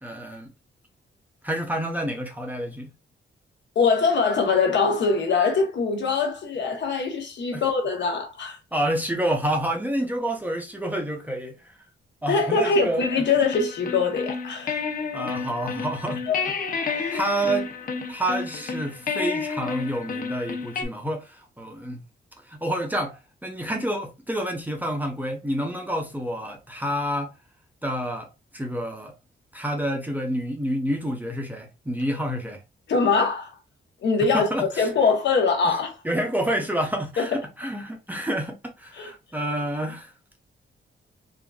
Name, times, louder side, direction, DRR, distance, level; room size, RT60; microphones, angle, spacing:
voice 1, 0.0-0.5 1.4-2.9 7.5-7.6 8.7-11.7 12.2-13.1 15.1-16.2 16.8-17.7 18.1-22.0 22.5-27.3 27.8-29.1 29.5-32.6 34.2-34.9 35.6-35.8 36.0-40.1, right 1 dB, 10° right, 0.5 m, -28 dB
voice 2, 3.7-8.6 12.3-14.8 16.3-16.4 16.9-17.0 32.9-33.5 34.0-36.0 37.2-37.3 38.9-39.1, left 4 dB, 70° left, 0.9 m, -23 dB
sound 1, 13.0-20.8, left 5 dB, 45° left, 0.5 m, -31 dB
3.7 x 2.4 x 2.3 m
wide cardioid pair, 170°, 19 cm